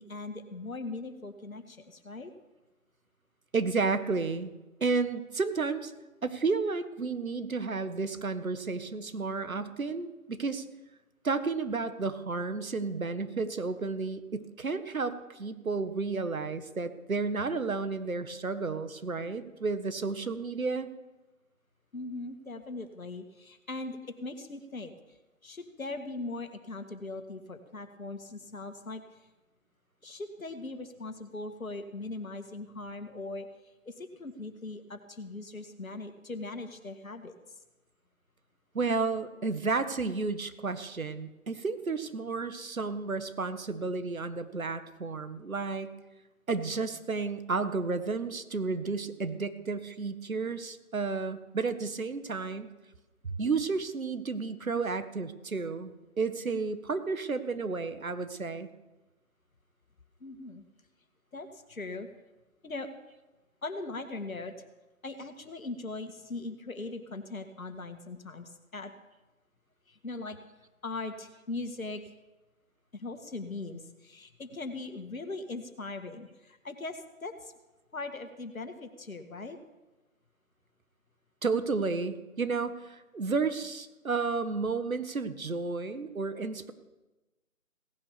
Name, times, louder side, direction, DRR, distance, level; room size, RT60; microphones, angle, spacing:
voice 1, 0.0-2.3 21.9-25.2 25.4-29.2 30.0-33.5 33.9-37.3 60.2-60.6 61.3-62.1 62.6-62.9 63.6-64.5 65.0-68.9 69.9-70.4 70.8-72.2 72.9-77.5 77.9-79.6, left 2 dB, 70° left, 8 dB, 2.0 m, -40 dB
voice 2, 3.5-4.5 4.8-5.9 6.2-10.6 11.2-20.9 38.7-45.9 46.5-52.7 53.2-58.7 81.4-86.7, right 4 dB, 70° right, 11 dB, 1.7 m, -32 dB
17.5 x 10.5 x 7.0 m, 1.1 s
figure-of-eight pair, 160°, 43 cm